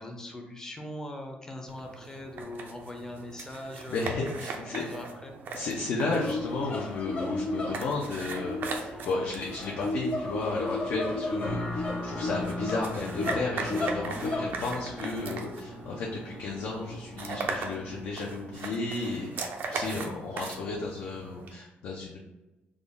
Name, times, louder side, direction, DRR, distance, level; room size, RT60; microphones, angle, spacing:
voice 1, 0.0-4.2 4.5-5.4 19.8-20.2, left 1 dB, 15° left, 3 dB, 0.6 m, -41 dB
sound 1, 1.7-21.5, right 4 dB, 60° right, 0.5 m, -40 dB
voice 2, 3.9-4.8 5.5-22.2, left 3 dB, 65° left, -2 dB, 0.5 m, -33 dB
sound 2, 6.0-15.1, left 2 dB, 35° left, 0.9 m, -34 dB
sound 3, 11.4-18.3, left 1 dB, 85° left, 1.1 m, -39 dB
3.6 x 2.0 x 3.6 m, 1.0 s
cardioid pair, 130°, 4 cm